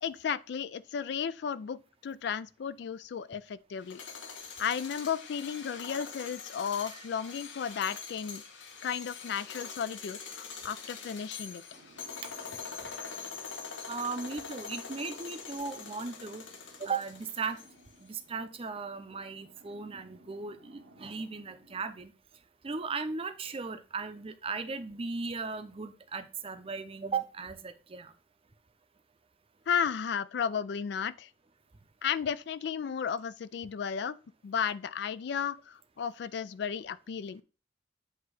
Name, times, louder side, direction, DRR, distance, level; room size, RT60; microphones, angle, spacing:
voice 1, 0.0-4.0 4.6-8.4 8.8-11.6 29.7-31.3 32.0-34.2 34.4-37.4, left 7 dB, 65° left, 0.3 m, -34 dB
sound 1, 3.8-17.9, left 5 dB, 85° left, 1.0 m, -44 dB
sound 2, 11.7-21.8, right 1 dB, 90° right, 1.1 m, -61 dB
voice 2, 13.9-16.4 16.8-17.6 18.0-22.1 22.6-28.1, right 4 dB, 30° right, 0.6 m, -37 dB
8.1 x 2.8 x 4.8 m
head